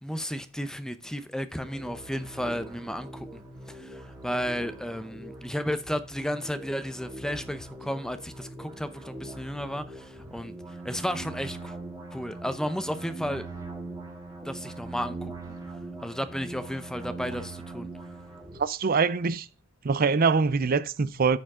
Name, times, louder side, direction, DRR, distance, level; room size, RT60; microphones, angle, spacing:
voice 1, 0.0-3.4 3.7-10.5 10.8-11.8 12.1-13.5 14.4-15.6 16.0-17.9, equal, 5° left, 0.7 m, -33 dB
sound 1, 1.5-18.6, right 2 dB, 15° right, 2.0 m, -42 dB
voice 2, 18.6-19.5 19.8-21.4, right 5 dB, 45° right, 0.5 m, -24 dB
14.0 x 5.0 x 3.7 m
head